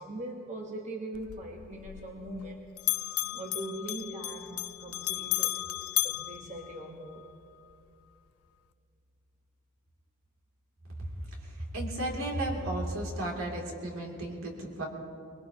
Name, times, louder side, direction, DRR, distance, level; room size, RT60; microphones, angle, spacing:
voice 1, 0.0-2.6 3.0-5.6 6.0-7.3, right 1 dB, 35° right, 1 dB, 1.2 m, -41 dB
Bell, 1.1-2.5 2.8-7.3, left 18 dB, 80° left, 0.3 m, -34 dB
voice 2, 10.9-14.9, right 1 dB, 75° right, -2 dB, 2.7 m, -34 dB
23.5 x 21.0 x 2.9 m, 2.5 s
head